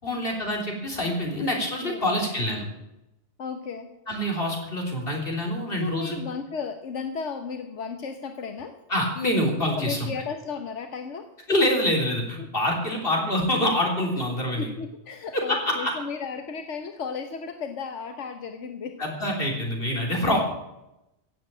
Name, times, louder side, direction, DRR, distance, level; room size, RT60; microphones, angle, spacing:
voice 1, 0.0-2.6 4.1-6.2 8.9-10.1 11.5-14.7 15.3-15.9 19.0-20.4, left 1 dB, 50° left, 0 dB, 3.8 m, -26 dB
voice 2, 1.8-2.2 3.4-3.9 5.8-8.7 9.7-11.3 12.4-12.5 14.6-19.0, left 5 dB, 90° left, 6 dB, 1.4 m, -34 dB
16.0 x 7.6 x 8.7 m, 0.90 s
omnidirectional pair, 1.2 m